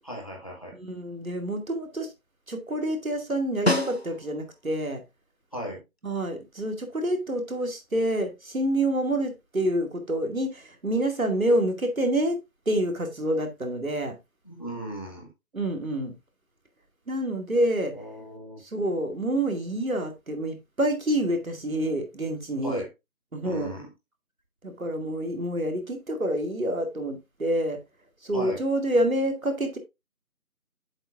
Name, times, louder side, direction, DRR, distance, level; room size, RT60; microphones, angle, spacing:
voice 1, 0.0-0.8 5.5-5.8 14.5-15.3 17.9-18.6 22.6-22.9 23.4-23.8 28.3-28.6, equal, 25° left, 1.8 m, -36 dB
voice 2, 0.7-2.1 2.5-5.0 6.0-12.4 12.7-14.2 15.5-16.1 17.1-17.9 18.6-22.8 23.3-23.7 24.6-27.8 28.2-29.8, right 1 dB, 70° right, 2.4 m, -27 dB
Snare drum, 3.7-4.6 9.0-9.1, left 1 dB, 45° left, 0.8 m, -27 dB
7.9 x 7.2 x 2.5 m
figure-of-eight pair, 180°, 44 cm